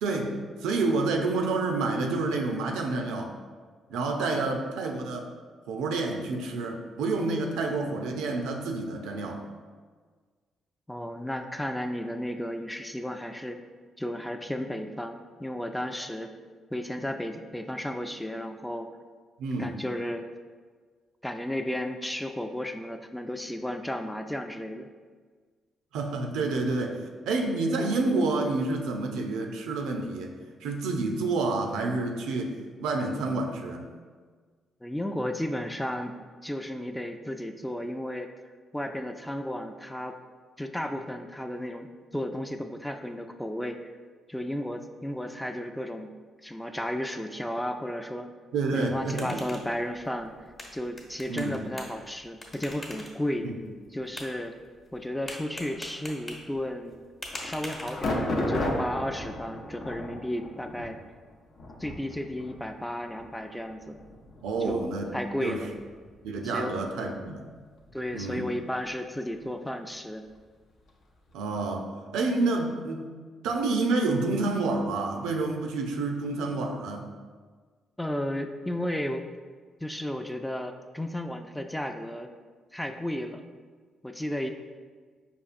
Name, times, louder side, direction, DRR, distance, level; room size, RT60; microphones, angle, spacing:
voice 1, 0.0-3.3 3.9-5.2 5.7-9.4 19.4-19.8 25.9-27.0 27.3-30.4 30.6-33.9 48.5-49.5 51.3-51.6 53.4-53.6 64.4-65.1 65.4-65.6 66.2-67.4 68.1-68.5 71.3-71.9 72.1-73.2 73.4-77.1, right 3 dB, 80° right, 3 dB, 0.4 m, -29 dB
voice 2, 4.2-4.5 10.9-13.6 14.0-16.3 16.7-18.9 19.6-20.3 21.2-24.9 34.8-36.1 36.4-38.3 38.7-40.1 40.6-43.9 44.3-46.1 46.4-48.3 48.7-50.3 50.7-53.5 53.9-54.6 54.9-57.0 57.4-61.0 61.8-64.0 64.6-64.9 65.1-65.7 66.4-66.7 67.9-70.2 78.0-79.2 79.8-82.3 82.7-83.4 84.0-84.5, left 1 dB, 5° left, 6 dB, 0.3 m, -33 dB
sound 1, 48.7-58.4, left 1 dB, 35° left, 0.9 m, -45 dB
sound 2, 57.3-67.3 67.5-68.3 68.8-68.9 70.3-70.4 70.9-71.0 71.3-71.4, left 1 dB, 65° left, 0.5 m, -35 dB
5.0 x 2.3 x 2.5 m, 1.5 s
supercardioid pair, 50°, 0 cm